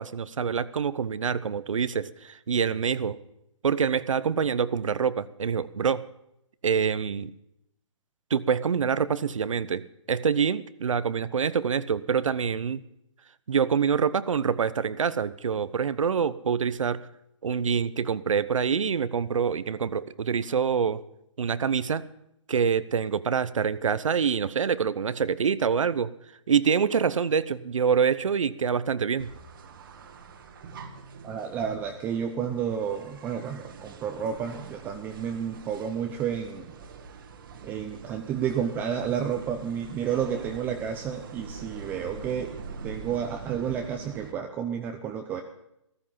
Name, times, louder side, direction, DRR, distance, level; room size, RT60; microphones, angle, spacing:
voice 1, 0.0-3.2 3.6-6.1 6.6-7.3 8.3-9.8 10.1-12.8 13.5-17.0 17.4-21.0 21.4-22.0 22.5-26.1 26.5-29.3, right 6 dB, 80° right, 16 dB, 0.9 m, -26 dB
sound 1, 29.2-44.3, right 5 dB, 45° right, 1.7 m, -44 dB
voice 2, 31.2-36.7 37.6-42.5 42.8-45.4, right 8 dB, 10° right, 5 dB, 0.6 m, -31 dB
15.0 x 14.0 x 5.7 m, 0.80 s
hypercardioid pair, 160°, 16 cm